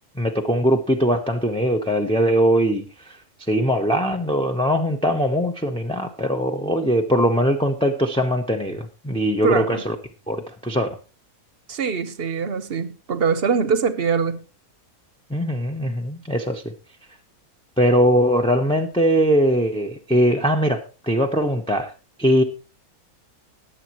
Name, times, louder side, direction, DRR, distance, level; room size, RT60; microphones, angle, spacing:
voice 1, 0.2-3.1 3.5-9.9 10.3-11.0 15.3-16.7 17.8-21.9 22.2-22.4, equal, 5° left, 0.6 m, -21 dB
voice 2, 9.4-9.8 11.7-14.4, right 6 dB, 45° right, 1.0 m, -23 dB
21.0 x 7.5 x 3.0 m
omnidirectional pair, 1.6 m